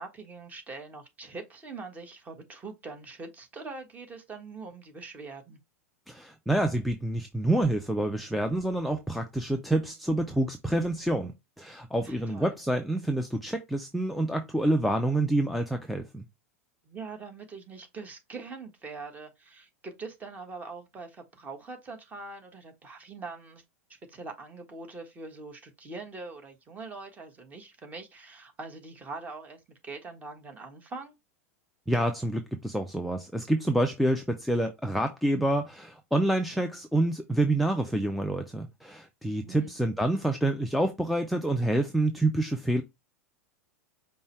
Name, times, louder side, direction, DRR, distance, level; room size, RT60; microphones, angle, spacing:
voice 1, 0.0-5.6 12.0-12.5 16.8-23.6 23.9-31.1 39.2-39.7, right 3 dB, 20° right, 1.3 m, -43 dB
voice 2, 6.1-16.2 31.9-42.8, right 1 dB, ahead, 0.5 m, -27 dB
5.3 x 2.2 x 4.5 m
figure-of-eight pair, 90°, 8 cm